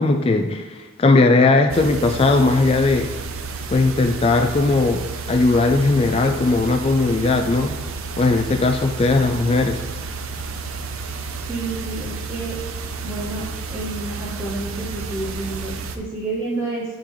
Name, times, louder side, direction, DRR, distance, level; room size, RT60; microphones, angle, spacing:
voice 1, 0.0-3.1 3.7-5.0 5.3-7.8 8.2-9.8, left 3 dB, 30° left, 4 dB, 0.3 m, -18 dB
sound 1, 1.7-16.0, right 4 dB, 80° right, 0.6 m, -31 dB
voice 2, 11.5-12.6 13.0-13.4 13.7-16.8, right 2 dB, 10° right, -7 dB, 0.9 m, -29 dB
10.0 x 3.8 x 3.1 m, 1.3 s
head